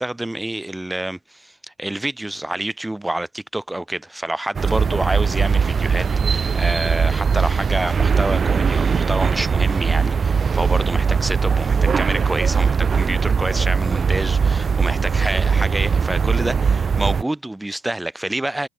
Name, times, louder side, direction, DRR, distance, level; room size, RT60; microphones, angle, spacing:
voice 1, 0.0-18.7, right 1 dB, 10° right, 2.9 m, -27 dB
sound 1, 4.5-17.2, right 6 dB, 40° right, 1.2 m, -20 dB
hypercardioid pair, 50°, 0 cm